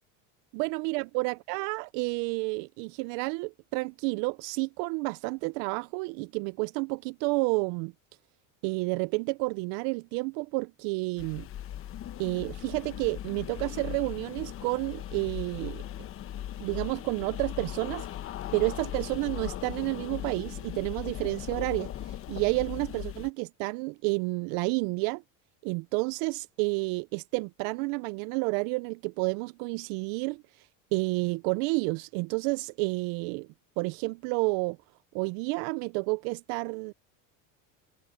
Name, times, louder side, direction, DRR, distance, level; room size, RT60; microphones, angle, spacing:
voice 1, 0.5-7.9 8.6-11.5 12.2-15.8 16.6-18.1 18.5-25.2 25.6-33.5 33.8-34.8 35.1-36.9, right 27 dB, 60° right, 0.5 m, -30 dB
sound 1, 11.2-23.3, left 11 dB, 35° left, 1.1 m, -38 dB
cardioid pair, 145°, 39 cm